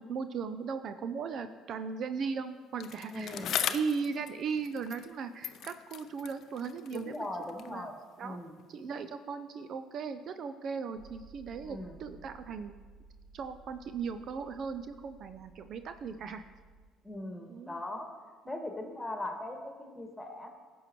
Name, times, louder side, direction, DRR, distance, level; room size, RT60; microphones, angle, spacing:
voice 1, 0.0-7.1 7.7-7.9 8.2-8.4 8.7-12.7 13.3-16.4 17.5-17.8 18.5-18.6, right 5 dB, 55° right, 10 dB, 0.4 m, -37 dB
Bicycle, 2.8-5.2 5.4-7.8 8.6-8.7, left 10 dB, 55° left, 0.4 m, -39 dB
voice 2, 3.1-3.5 6.9-7.9 8.2-8.6 11.6-12.0 17.0-18.1 18.5-20.5, left 1 dB, 10° left, 4 dB, 1.7 m, -39 dB
sound 1, 11.0-16.9, right 3 dB, 70° right, 1.0 m, -56 dB
16.0 x 6.3 x 3.0 m, 1.5 s
hypercardioid pair, 55°, 0 cm